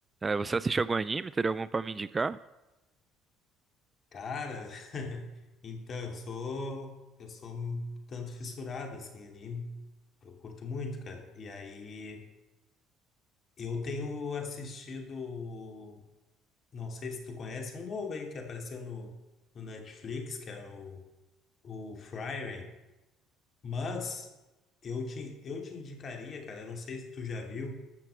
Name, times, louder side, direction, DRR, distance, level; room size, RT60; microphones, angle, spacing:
voice 1, 0.2-2.4, right 4 dB, 25° right, 18 dB, 0.4 m, -30 dB
voice 2, 4.1-5.3 5.6-9.8 10.2-12.3 13.6-16.0 16.7-19.1 19.5-21.0 21.6-22.7 23.6-24.3 24.8-27.8, left 4 dB, 45° left, 3 dB, 2.9 m, -39 dB
14.0 x 6.0 x 7.8 m, 1.0 s
hypercardioid pair, 65°, 0 cm